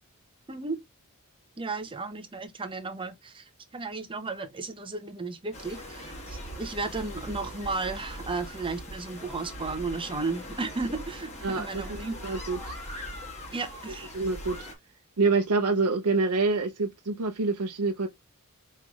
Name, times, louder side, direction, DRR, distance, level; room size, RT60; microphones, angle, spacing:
voice 1, 0.5-0.8 1.6-12.1 13.5-14.1, right 3 dB, 25° right, 0.7 m, -34 dB
sound 1, 5.5-14.7, equal, 30° left, 1.4 m, -41 dB
voice 2, 11.4-11.8 12.2-12.8 14.1-14.7 15.2-18.1, right 3 dB, 80° right, 0.7 m, -26 dB
5.5 x 3.1 x 2.4 m
head